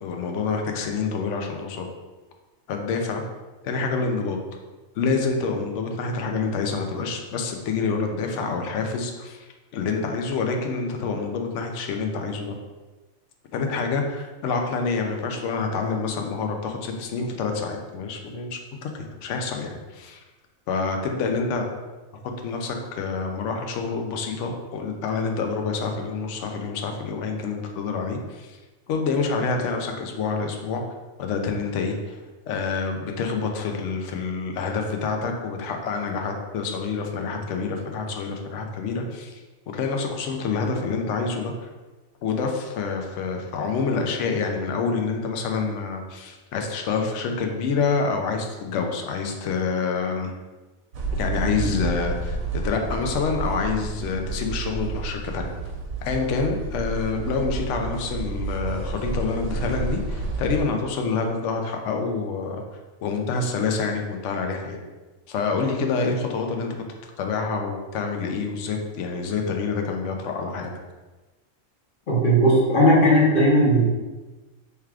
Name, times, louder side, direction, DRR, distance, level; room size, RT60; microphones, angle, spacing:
voice 1, 0.0-1.9 2.7-3.2 3.6-4.4 5.0-12.6 13.5-20.2 20.7-21.7 22.4-28.6 28.9-30.8 31.2-32.2 32.5-39.4 39.7-41.7 42.2-50.3 51.1-55.5 56.0-62.6 63.0-64.8 65.3-66.8 67.2-70.7, left 4 dB, 65° left, 3 dB, 0.9 m, -27 dB
sound 1, 50.9-60.6, right 3 dB, 85° right, 1.1 m, -30 dB
voice 2, 72.1-73.8, equal, 40° left, -5 dB, 1.1 m, -17 dB
4.5 x 3.4 x 2.4 m, 1.2 s
omnidirectional pair, 1.4 m